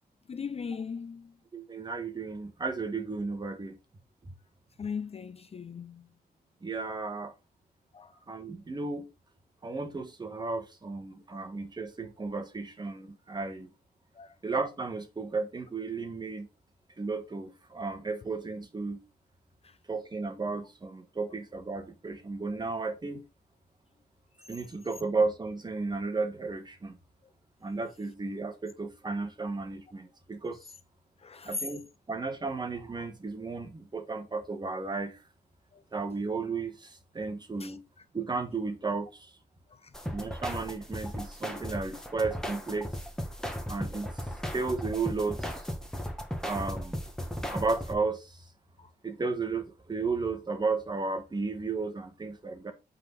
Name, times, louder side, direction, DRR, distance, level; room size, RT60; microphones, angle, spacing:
voice 1, 0.3-1.3 4.8-6.1 7.9-8.1 14.2-14.3 19.6-19.7 31.2-31.6 35.7-35.8 37.6-37.7 39.8-39.9 46.0-46.1 48.8-48.9, left 5 dB, 35° left, 0.5 m, -38 dB
voice 2, 1.5-3.8 6.6-7.3 8.3-9.1 9.6-13.7 14.4-16.5 17.0-19.0 19.9-23.2 24.5-27.0 27.6-30.6 31.4-35.2 35.9-37.8 38.1-39.3 40.1-42.9 43.7-44.2 44.5-45.6 46.4-47.0 47.5-48.4 49.0-52.7, right 4 dB, 25° right, 1.4 m, -34 dB
sound 1, 39.9-47.9, equal, 5° left, 1.5 m, -36 dB
8.8 x 4.0 x 6.0 m
wide cardioid pair, 150°, 17 cm